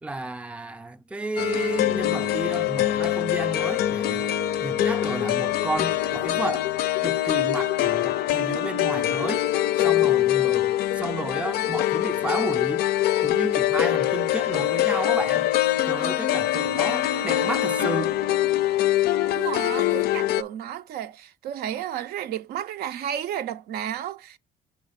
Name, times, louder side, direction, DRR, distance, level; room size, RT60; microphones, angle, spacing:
voice 1, 0.0-4.3 4.6-6.7 7.0-9.4 9.8-12.8 13.2-15.5 15.8-18.2, right 2 dB, 5° right, 0.4 m, -32 dB
sound 1, 1.4-20.4, left 13 dB, 70° left, 0.4 m, -24 dB
voice 2, 19.3-24.4, right 10 dB, 65° right, 0.5 m, -32 dB
6.0 x 3.3 x 5.6 m
cardioid pair, 110°, 17 cm